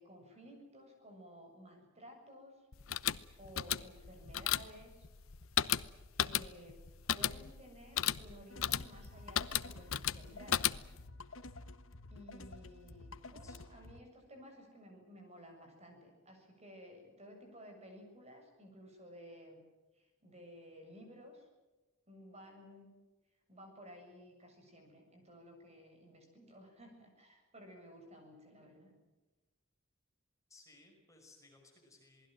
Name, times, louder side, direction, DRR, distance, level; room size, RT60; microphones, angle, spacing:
voice 1, 0.0-2.7 3.4-5.1 6.2-6.8 7.1-10.6 12.1-19.6 19.9-21.5 22.1-22.9 23.5-28.9, equal, 30° right, 3 dB, 7.4 m, -55 dB
sound 1, 2.7-11.1, left 10 dB, 90° left, 0.8 m, -35 dB
sound 2, 8.5-14.0, left 2 dB, 70° left, 1.3 m, -51 dB
voice 2, 13.4-13.9 30.5-32.3, left 2 dB, 15° left, 1 dB, 5.8 m, -62 dB
27.5 x 20.5 x 7.7 m, 1.1 s
head